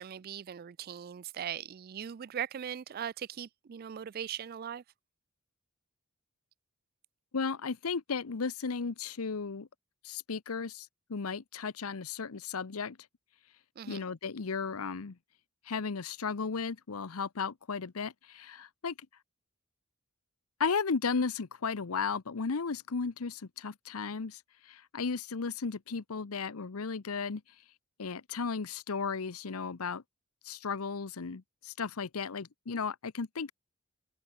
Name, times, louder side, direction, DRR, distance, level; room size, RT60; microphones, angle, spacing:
voice 1, 0.0-4.8 13.8-14.0, right 9 dB, 45° right, 0.3 m, -39 dB
voice 2, 7.3-9.7 10.0-13.0 13.8-15.2 15.7-18.9 20.6-27.4 28.0-30.0 30.4-33.5, left 5 dB, 90° left, 0.8 m, -35 dB
head